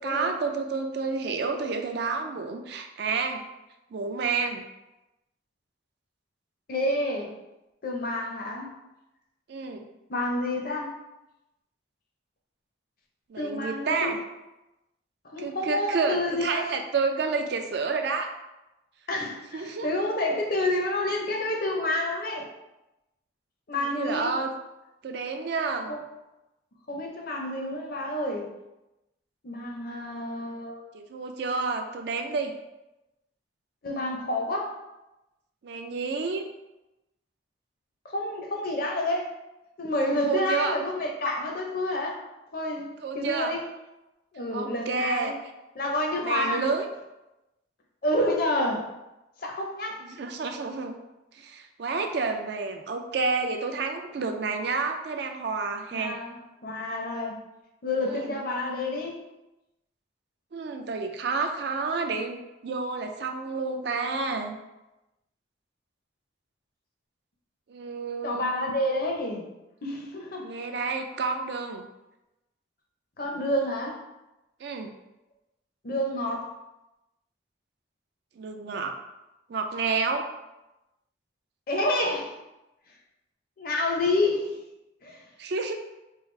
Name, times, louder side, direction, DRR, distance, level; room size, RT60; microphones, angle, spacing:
voice 1, 0.0-3.4 3.9-4.7 9.5-9.9 13.3-14.2 15.4-18.3 19.5-19.9 23.7-24.5 25.0-25.9 30.9-32.5 35.6-36.4 40.2-40.8 43.0-43.5 44.5-45.3 46.2-46.9 50.0-51.0 51.3-56.2 58.0-58.4 60.5-64.6 67.7-68.5 70.4-71.9 74.6-74.9 78.4-79.0 79.5-80.3 85.4-85.7, right 4 dB, 55° right, 5 dB, 0.4 m, -30 dB
voice 2, 6.7-7.3 7.8-8.7 10.1-10.9 13.4-14.1 15.2-16.8 19.1-22.5 23.7-24.3 25.9-26.0 26.9-28.5 29.4-30.8 33.8-34.8 38.0-39.3 39.8-42.2 42.5-43.6 44.3-45.4 45.8-46.6 48.0-48.9 49.4-50.0 55.9-56.4 56.6-57.3 57.8-59.2 68.2-69.4 69.8-70.5 73.2-74.0 75.8-76.5 81.7-82.3 83.6-84.5 85.0-85.2, left 1 dB, 45° left, 0 dB, 0.6 m, -29 dB
4.6 x 2.4 x 3.1 m, 0.98 s
head